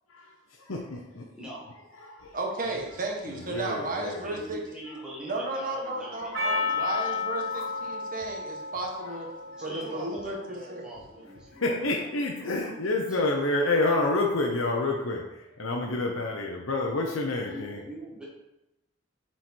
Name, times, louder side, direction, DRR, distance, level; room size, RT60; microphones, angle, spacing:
voice 1, 0.1-1.3 2.0-2.3 3.3-4.1 6.2-6.7 7.5-7.7 9.0-9.2 9.5-9.7 11.6-17.8, left 2 dB, 80° left, -1 dB, 0.9 m, -29 dB
voice 2, 2.3-4.6 5.2-9.3 9.6-10.9, right 2 dB, 45° right, 0 dB, 1.4 m, -34 dB
voice 3, 4.0-7.1 9.6-12.7 12.9-13.2 17.5-18.3, right 1 dB, 5° right, -6 dB, 2.0 m, -43 dB
Percussion, 6.3-10.8, left 4 dB, 65° right, 2.0 m, -32 dB
7.8 x 4.5 x 4.5 m, 0.92 s
head